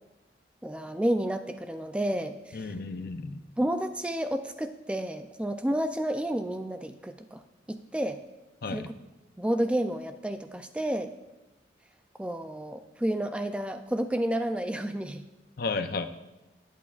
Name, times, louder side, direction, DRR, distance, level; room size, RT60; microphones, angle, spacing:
voice 1, 0.6-2.7 3.6-7.4 7.7-8.2 8.7-8.9 9.4-11.1 12.2-15.2, right 1 dB, 5° right, 8 dB, 0.3 m, -30 dB
voice 2, 2.5-3.4 8.6-8.9 15.6-16.1, left 3 dB, 50° left, 9 dB, 0.6 m, -33 dB
19.0 x 8.4 x 2.4 m, 1.0 s
head